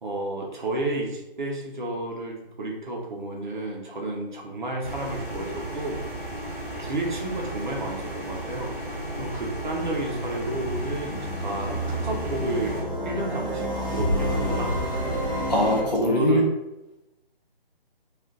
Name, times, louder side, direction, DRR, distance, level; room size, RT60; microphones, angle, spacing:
voice 1, 0.0-6.0 6.8-8.8 9.1-12.8 13.0-14.7 15.8-16.4, right 2 dB, 50° right, -1 dB, 0.7 m, -31 dB
sound 1, 4.8-12.8, right 1 dB, 15° right, 1.4 m, -35 dB
sound 2, 9.1-15.8, equal, 20° left, 0.4 m, -30 dB
voice 2, 15.5-16.4, left 1 dB, 45° left, -4 dB, 0.9 m, -22 dB
2.4 x 2.4 x 3.7 m, 0.94 s
figure-of-eight pair, 150°, 30 cm